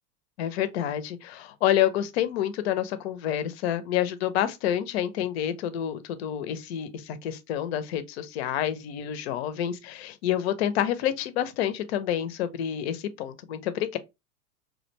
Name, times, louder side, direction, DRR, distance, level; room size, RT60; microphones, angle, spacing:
voice 1, 0.4-14.0, left 11 dB, 45° left, 0.6 m, -28 dB
3.2 x 2.5 x 2.9 m
figure-of-eight pair, 90°, 46 cm